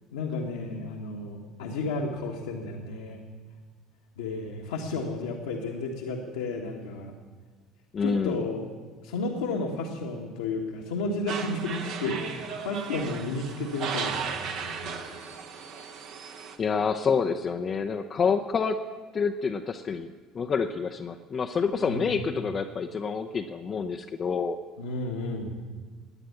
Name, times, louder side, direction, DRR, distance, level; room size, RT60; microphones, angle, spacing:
voice 1, 0.1-3.2 4.2-7.1 8.0-8.6 9.0-15.0 21.8-22.2 24.8-25.5, left 3 dB, 70° left, -1 dB, 1.5 m, -32 dB
voice 2, 7.9-8.4 16.6-18.8 19.1-20.1 20.3-24.6, left 5 dB, 35° left, 4 dB, 0.7 m, -28 dB
sound 1, 11.3-16.6, right 6 dB, 55° right, 1.5 m, -36 dB
18.0 x 10.0 x 7.1 m, 1.5 s
figure-of-eight pair, 60°, 0 cm